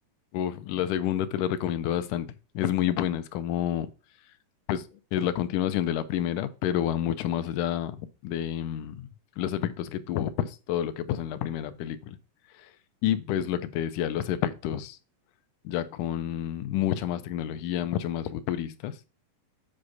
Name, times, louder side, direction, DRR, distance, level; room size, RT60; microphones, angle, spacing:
voice 1, 0.3-2.3 2.6-3.9 4.7-8.0 8.2-9.1 9.4-12.2 13.0-15.0 15.7-19.0, left 11 dB, 80° left, 2.1 m, -29 dB
8.0 x 5.0 x 4.0 m
omnidirectional pair, 3.9 m